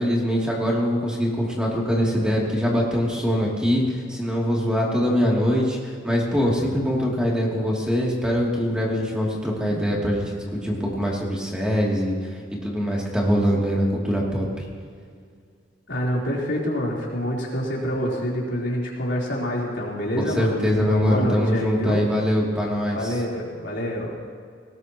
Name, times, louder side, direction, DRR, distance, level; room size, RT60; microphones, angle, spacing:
voice 1, 0.0-12.2 12.6-14.5 20.2-23.1, equal, 5° right, -4 dB, 2.9 m, -23 dB
voice 2, 15.9-20.6 20.8-22.0 22.9-24.2, equal, 80° left, -4 dB, 4.0 m, -27 dB
20.0 x 19.0 x 3.1 m, 2.1 s
head